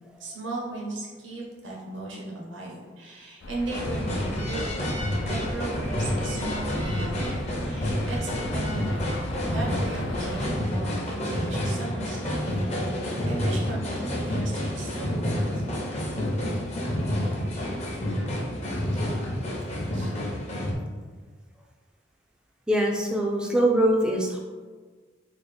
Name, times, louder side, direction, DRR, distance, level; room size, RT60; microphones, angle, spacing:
voice 1, 0.2-4.8 5.3-9.2 9.5-12.5 12.9-15.6 18.9-19.1 19.9-20.1, right 2 dB, 80° right, -3 dB, 0.8 m, -36 dB
sound 1, 3.4-10.6, left 1 dB, 80° left, 0.4 m, -37 dB
sound 2, 3.7-20.7, equal, 35° left, 0.6 m, -29 dB
voice 2, 22.7-24.4, right 1 dB, 5° right, 0 dB, 0.3 m, -23 dB
3.7 x 2.1 x 3.4 m, 1.4 s
head